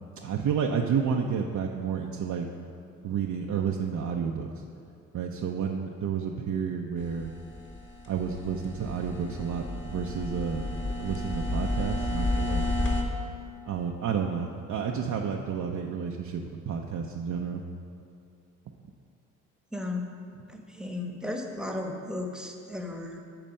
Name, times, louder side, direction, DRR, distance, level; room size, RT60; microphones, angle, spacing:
voice 1, 0.2-2.5 3.0-4.5 5.1-7.3 8.1-12.7 13.7-17.6, right 6 dB, 50° right, 1 dB, 0.7 m, -30 dB
sound 1, 7.0-13.0, left 1 dB, 30° left, 1.4 m, -31 dB
voice 2, 19.7-20.1 20.5-23.2, left 2 dB, ahead, 2 dB, 1.1 m, -35 dB
8.9 x 4.2 x 6.5 m, 2.4 s
hypercardioid pair, 50°, 39 cm